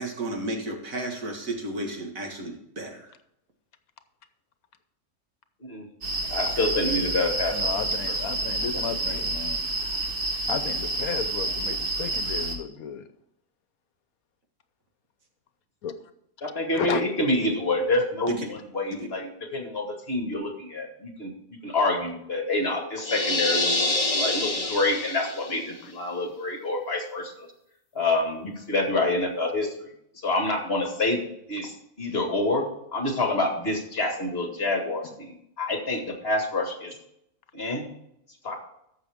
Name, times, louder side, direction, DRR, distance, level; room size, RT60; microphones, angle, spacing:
voice 1, 0.0-3.1 18.4-18.5 19.0-19.1, right 1 dB, 65° right, 3 dB, 2.1 m, -33 dB
sound 1, 6.0-12.5, right 2 dB, 40° right, 1.7 m, -29 dB
voice 2, 6.3-7.7 8.7-9.2 16.4-21.3 21.6-27.5 27.9-31.2 31.5-32.7 32.9-36.9 37.5-37.8 38.4-38.6, left 2 dB, 45° left, 3 dB, 2.1 m, -27 dB
voice 3, 7.5-9.6 10.5-13.0 15.8-15.9 16.7-17.0, left 7 dB, 80° left, 10 dB, 1.3 m, -33 dB
sound 2, 23.0-25.6, left 2 dB, 30° left, 0.9 m, -26 dB
14.5 x 6.3 x 3.5 m, 0.76 s
omnidirectional pair, 1.5 m